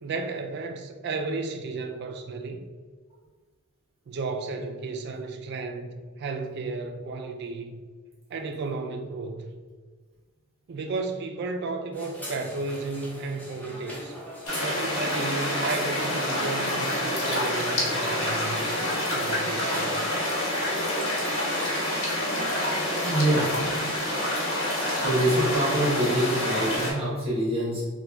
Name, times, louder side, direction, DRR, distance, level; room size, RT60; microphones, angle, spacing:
voice 1, 0.0-2.6 4.1-7.8 8.3-9.5 10.7-14.1 14.6-18.8 19.1-20.1, right 3 dB, 50° right, 5 dB, 0.3 m, -33 dB
sound 1, 11.9-26.8, equal, 10° left, 0.5 m, -42 dB
sound 2, 14.5-26.9, left 1 dB, 90° left, 1.1 m, -27 dB
voice 2, 23.0-23.9 25.0-27.8, right 1 dB, 25° right, -8 dB, 1.0 m, -25 dB
3.0 x 2.2 x 3.4 m, 1.5 s
head